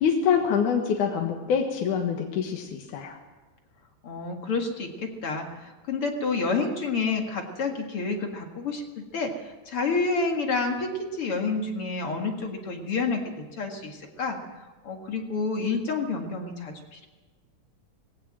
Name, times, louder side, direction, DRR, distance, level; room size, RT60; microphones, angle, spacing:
voice 1, 0.0-3.2, left 7 dB, 70° left, 1 dB, 2.9 m, -25 dB
voice 2, 4.0-8.8 9.1-14.4 14.8-17.1, left 4 dB, 45° left, 3 dB, 2.5 m, -29 dB
20.0 x 17.0 x 7.6 m, 1.3 s
omnidirectional pair, 3.8 m